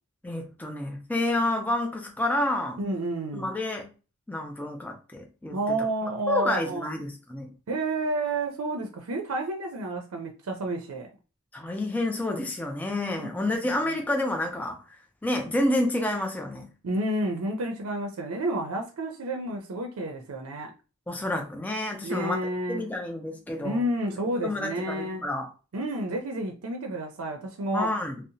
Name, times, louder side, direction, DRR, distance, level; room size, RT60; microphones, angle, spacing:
voice 1, 0.2-2.8 3.3-3.9 4.3-5.6 6.3-7.5 11.5-14.8 15.2-16.7 21.1-22.4 22.7-23.8 24.4-25.5 27.7-28.2, left 1 dB, 5° left, 0.3 m, -29 dB
voice 2, 2.8-3.5 5.5-6.9 7.7-11.1 13.2-13.5 13.8-14.0 16.8-20.7 22.0-22.8 23.6-25.3 25.7-27.9, right 1 dB, 90° right, 0.5 m, -30 dB
2.7 x 2.0 x 2.6 m
head